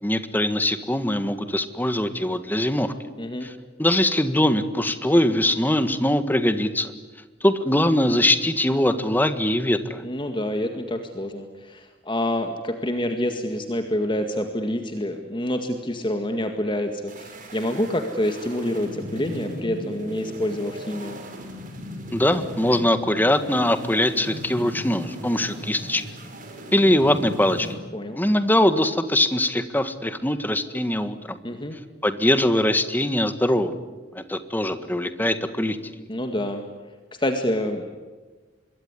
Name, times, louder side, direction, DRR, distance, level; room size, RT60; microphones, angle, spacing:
voice 1, 0.0-2.9 3.4-3.5 3.8-6.9 7.4-10.0 22.1-26.0 26.7-27.7 28.1-31.4 32.0-33.8 34.1-35.9, left 1 dB, 10° left, 10 dB, 1.6 m, -22 dB
voice 2, 3.2-3.5 10.0-21.2 27.9-28.2 31.4-31.8 36.1-36.6 37.2-37.9, left 1 dB, 25° left, 5 dB, 1.9 m, -27 dB
sound 1, 17.1-27.7, equal, 45° right, 6.2 m, -37 dB
26.0 x 22.5 x 9.8 m, 1.3 s
head